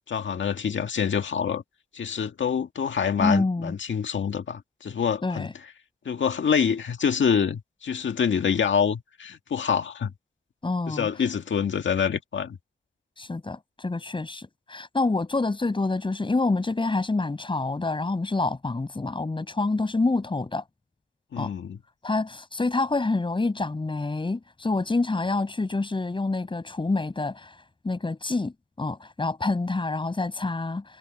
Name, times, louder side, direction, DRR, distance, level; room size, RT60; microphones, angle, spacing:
voice 1, 0.1-1.6 1.9-5.5 6.1-10.1 10.9-12.6 21.3-21.8, left 7 dB, 75° left, 1.9 m, -26 dB
voice 2, 3.2-3.7 5.2-5.5 10.6-11.1 13.2-20.6 21.4-21.5 22.0-27.5 27.8-30.8, left 3 dB, 25° left, 6.1 m, -27 dB
wide cardioid pair, 175°, 20 cm